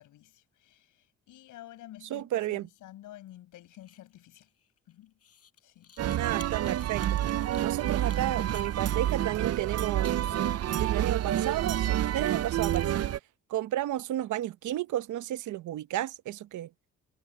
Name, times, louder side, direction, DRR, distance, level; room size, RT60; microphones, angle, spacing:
voice 1, 0.0-4.5 4.9-5.1 5.6-5.9, left 14 dB, 85° left, 7.4 m, -51 dB
voice 2, 2.1-2.7 6.2-7.2 7.6-10.4 10.8-12.9 13.5-16.7, right 13 dB, 75° right, 0.9 m, -32 dB
sound 1, 3.8-9.0 9.3-10.1 10.5-10.6 11.1-11.2 11.7-12.3 12.6-13.1, left 8 dB, 50° left, 5.4 m, -55 dB
sound 2, 6.0-13.2, right 12 dB, 55° right, 0.6 m, -28 dB
cardioid pair, 90°, 30 cm